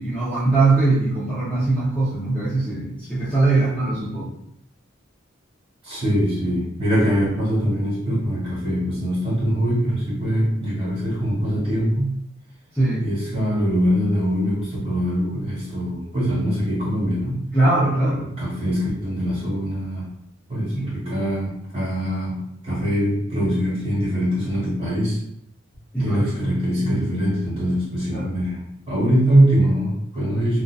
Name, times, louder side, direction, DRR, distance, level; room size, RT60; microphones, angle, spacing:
voice 1, 0.0-4.3 12.7-13.0 17.5-18.3 20.7-20.9 25.9-26.2 28.1-28.4, right 2 dB, 5° left, -11 dB, 0.5 m, -21 dB
voice 2, 5.8-12.1 13.0-17.4 18.4-20.1 20.5-22.4 22.6-25.2 26.0-28.6 28.9-30.6, equal, 30° right, -8 dB, 1.3 m, -22 dB
2.6 x 2.2 x 2.3 m, 0.74 s
head